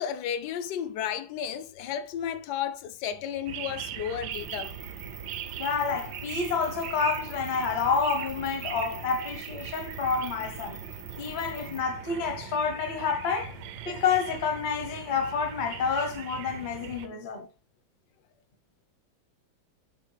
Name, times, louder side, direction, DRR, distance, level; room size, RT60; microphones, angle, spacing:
voice 1, 0.0-4.7, left 9 dB, 70° left, 1.0 m, -33 dB
sound 1, 3.5-17.1, right 10 dB, 70° right, 1.1 m, -40 dB
sound 2, 4.3-11.8, right 3 dB, 45° right, 0.6 m, -45 dB
voice 2, 5.6-10.8 11.2-13.5 13.9-17.5, left 5 dB, 45° left, 0.6 m, -29 dB
7.4 x 4.0 x 3.3 m
omnidirectional pair, 2.1 m